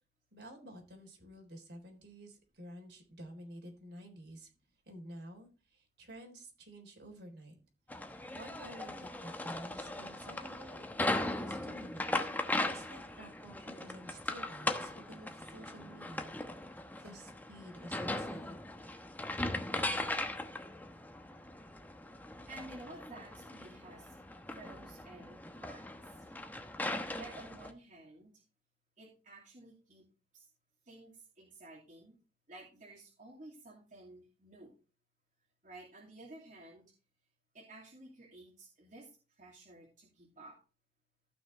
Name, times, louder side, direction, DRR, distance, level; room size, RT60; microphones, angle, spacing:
voice 1, 0.3-4.5 4.9-7.6 7.9-12.1 12.5-16.3 17.0-18.6, right 1 dB, 70° right, 3 dB, 3.9 m, -51 dB
sound 1, 7.9-27.7, left 1 dB, 10° left, 1.0 m, -39 dB
voice 2, 22.5-24.2 24.5-26.2 27.2-28.3 29.0-30.0 30.3-30.5 30.8-32.1 32.5-34.7 35.6-36.9 37.5-39.1 39.4-40.6, right 2 dB, 45° right, -2 dB, 2.7 m, -53 dB
15.0 x 6.2 x 3.3 m, 0.34 s
head